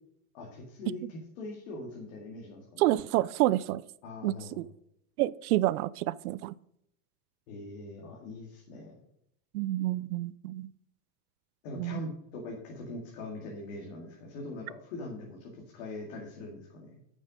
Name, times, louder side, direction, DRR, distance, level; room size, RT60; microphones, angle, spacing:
voice 1, 0.3-2.8 4.0-4.6 7.5-9.0 11.6-17.0, left 2 dB, 55° left, -1 dB, 2.3 m, -42 dB
voice 2, 2.8-3.8 4.2-4.7 5.2-6.5 9.5-10.7 11.8-12.0, right 16 dB, 70° right, 18 dB, 0.6 m, -28 dB
9.0 x 6.4 x 5.2 m, 0.74 s
supercardioid pair, 160°, 47 cm